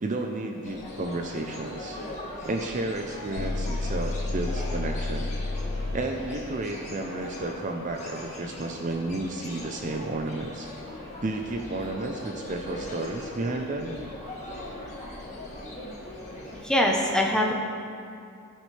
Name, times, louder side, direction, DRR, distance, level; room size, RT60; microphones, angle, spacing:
voice 1, 0.0-2.0 2.4-5.3 5.9-10.7 11.2-14.0, right 2 dB, 35° right, 3 dB, 0.6 m, -32 dB
sound 1, 0.6-16.6, left 1 dB, 30° left, 2.1 m, -40 dB
sound 2, 3.4-6.2, left 2 dB, 90° left, 0.7 m, -30 dB
voice 2, 16.6-17.5, left 1 dB, 5° left, -1 dB, 0.9 m, -23 dB
17.5 x 6.3 x 3.3 m, 2.4 s
head